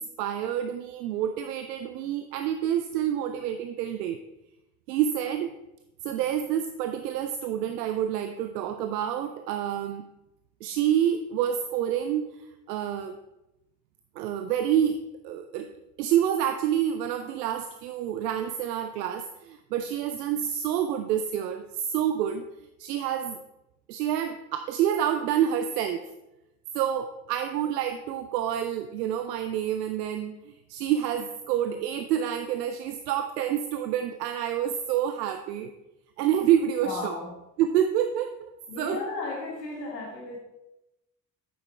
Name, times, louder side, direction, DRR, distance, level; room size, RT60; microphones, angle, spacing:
voice 1, 0.0-4.2 4.9-5.5 6.0-10.1 10.6-13.2 14.2-15.7 16.0-22.4 22.8-23.4 23.9-26.1 26.7-35.7 36.2-37.1 37.6-38.3 38.8-39.0, right 10 dB, 75° right, 8 dB, 0.6 m, -28 dB
voice 2, 36.8-37.4 38.7-40.4, left 3 dB, 85° left, 0 dB, 1.5 m, -34 dB
8.7 x 6.7 x 4.2 m, 0.93 s
figure-of-eight pair, 40°, 49 cm